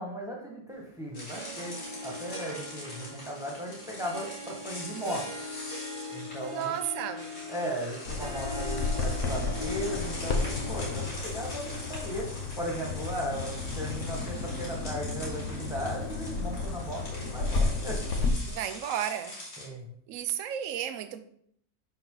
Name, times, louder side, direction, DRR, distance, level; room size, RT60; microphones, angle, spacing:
voice 1, 0.0-1.8 2.0-5.2 6.1-6.7 7.5-12.2 12.6-18.0 19.6-19.9, equal, ahead, 1.5 m, -37 dB
sound 1, 1.1-19.7, left 1 dB, 90° left, 3.6 m, -43 dB
Harp, 1.3-12.4, left 1 dB, 25° right, 0.8 m, -41 dB
voice 2, 6.5-7.3 18.5-19.4 20.1-21.2, right 10 dB, 65° right, 1.0 m, -33 dB
Bird vocalization bird call bird song, 8.1-18.3, left 3 dB, 55° left, 1.2 m, -32 dB
11.0 x 4.5 x 3.9 m
omnidirectional pair, 1.7 m